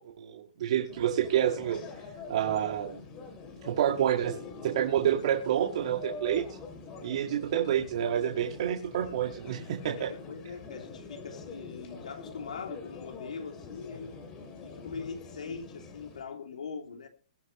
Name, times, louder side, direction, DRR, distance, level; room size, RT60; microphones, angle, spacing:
voice 1, 0.2-1.8 2.3-3.0 3.6-6.4 7.0-10.1, right 10 dB, 55° right, 2.0 m, -28 dB
sound 1, 0.9-16.2, left 4 dB, 25° left, 3.1 m, -45 dB
voice 2, 10.0-14.1 14.6-17.1, left 5 dB, 85° left, 2.9 m, -41 dB
22.0 x 7.9 x 3.1 m
hypercardioid pair, 150°, 4 cm